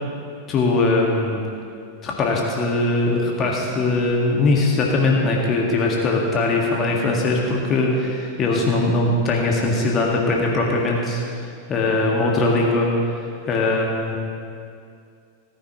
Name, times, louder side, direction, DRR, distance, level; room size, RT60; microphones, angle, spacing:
voice 1, 0.5-1.4 2.0-12.9 13.5-14.2, left 2 dB, 30° left, -2 dB, 1.8 m, -21 dB
18.5 x 9.7 x 3.1 m, 2.4 s
figure-of-eight pair, 90°, 0 cm